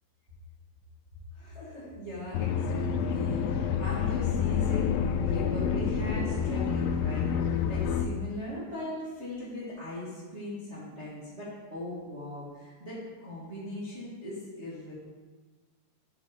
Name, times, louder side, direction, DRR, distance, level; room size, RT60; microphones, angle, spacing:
voice 1, 1.3-4.8 5.2-14.9, left 1 dB, 85° right, -10 dB, 0.6 m, -39 dB
sound 1, 2.3-8.1, left 7 dB, 90° left, 1.9 m, -28 dB
6.9 x 5.2 x 5.2 m, 1.4 s
omnidirectional pair, 4.6 m